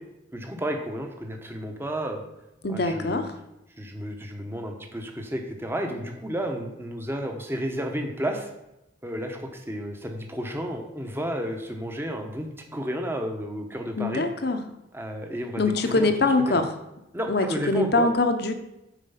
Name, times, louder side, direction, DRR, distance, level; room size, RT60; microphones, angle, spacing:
voice 1, 0.3-2.2 2.7-3.3 3.8-8.5 9.0-14.2 14.9-16.6 17.1-18.1, equal, 10° right, 4 dB, 0.9 m, -32 dB
voice 2, 2.6-3.4 14.0-14.6 15.6-16.7 17.3-18.5, left 2 dB, 55° left, 8 dB, 0.8 m, -23 dB
9.2 x 4.4 x 5.7 m, 0.90 s
head